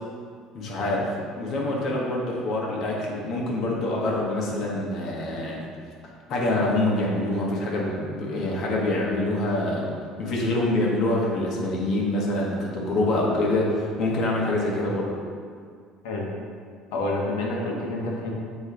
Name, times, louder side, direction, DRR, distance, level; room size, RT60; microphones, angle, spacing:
voice 1, 0.5-5.6 6.3-15.1, left 1 dB, 55° left, -3 dB, 1.5 m, -25 dB
voice 2, 16.9-18.4, left 2 dB, 85° left, -2 dB, 1.2 m, -28 dB
8.5 x 3.2 x 3.9 m, 2.1 s
cardioid pair, 115°, 0 cm